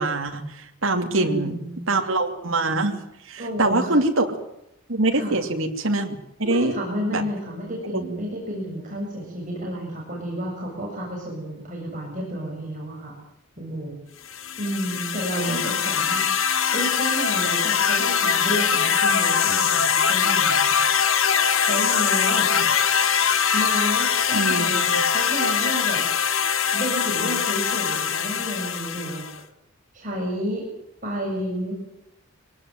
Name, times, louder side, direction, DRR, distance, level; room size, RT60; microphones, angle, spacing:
voice 1, 0.0-1.6 1.9-4.4 4.9-6.7 7.1-7.2 15.3-15.6 22.6-22.7 24.3-24.7, right 2 dB, 75° right, 3 dB, 2.8 m, -24 dB
voice 2, 1.1-1.9 3.4-4.0 5.1-5.4 6.4-13.2 13.6-14.0 14.6-16.5 16.7-20.8 21.6-22.5 23.5-26.0 26.7-29.2 29.9-30.7 31.0-31.7, equal, 35° right, -3 dB, 7.5 m, -31 dB
sound 1, 14.3-29.4, left 7 dB, 75° left, 1.6 m, -22 dB
23.5 x 19.0 x 9.3 m, 0.81 s
head